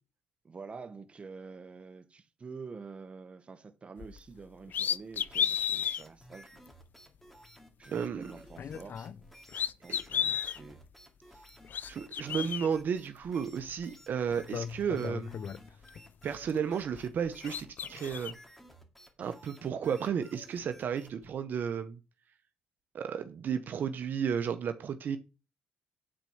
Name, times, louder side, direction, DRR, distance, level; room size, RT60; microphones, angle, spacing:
voice 1, 0.4-6.6 7.8-9.3 9.8-10.8 12.3-12.5, right 4 dB, 30° right, 1.1 m, -47 dB
sound 1, 4.0-4.2 4.7-6.0 6.7-6.8 8.5-9.2 9.5-10.6 11.5-12.7 13.8-13.9 14.3-16.0 16.3-17.2 17.4-18.3, left 8 dB, 55° left, 0.5 m, -34 dB
sound 2, 5.2-21.3, equal, 5° left, 2.3 m, -56 dB
voice 2, 7.9-8.3 9.9-10.0 11.9-15.4 16.2-18.3 19.2-22.0 22.9-25.2, right 7 dB, 55° right, 0.9 m, -33 dB
8.9 x 4.5 x 7.2 m
cardioid pair, 90°, 4 cm